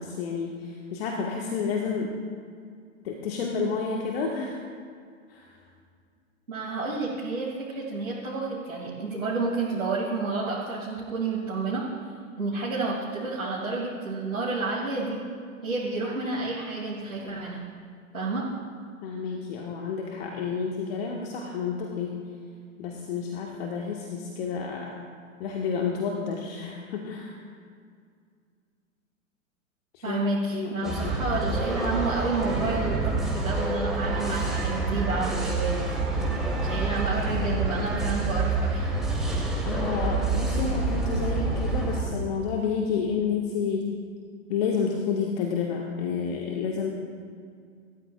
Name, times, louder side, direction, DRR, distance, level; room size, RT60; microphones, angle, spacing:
voice 1, 0.0-2.1 3.0-4.6 5.3-5.5 19.0-22.1 22.8-24.9 25.4-27.4 29.9-30.2 30.5-31.1 39.6-43.9 44.5-46.9, left 5 dB, 45° left, 0 dB, 1.7 m, -30 dB
voice 2, 6.5-11.8 12.4-15.2 15.6-17.6 18.1-18.5 30.0-35.9 36.6-38.9, right 3 dB, 85° right, -7 dB, 2.9 m, -30 dB
sound 1, 30.8-42.0, right 3 dB, ahead, 2.7 m, -27 dB
27.0 x 13.5 x 2.5 m, 2.2 s
figure-of-eight pair, 105°, 41 cm